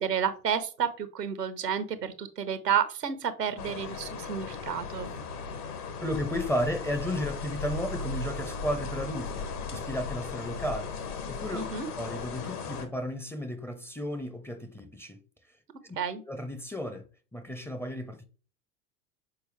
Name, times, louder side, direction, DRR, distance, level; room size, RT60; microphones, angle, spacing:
voice 1, 0.0-5.1 11.5-11.9 16.0-16.2, right 8 dB, 80° right, 1.0 m, -30 dB
sound 1, 3.6-12.8, left 4 dB, 70° left, 1.5 m, -37 dB
voice 2, 6.0-11.6 12.0-15.2 15.8-16.0 16.3-17.0 17.3-18.2, equal, 5° left, 0.6 m, -34 dB
6.9 x 4.5 x 3.3 m
figure-of-eight pair, 80°, 48 cm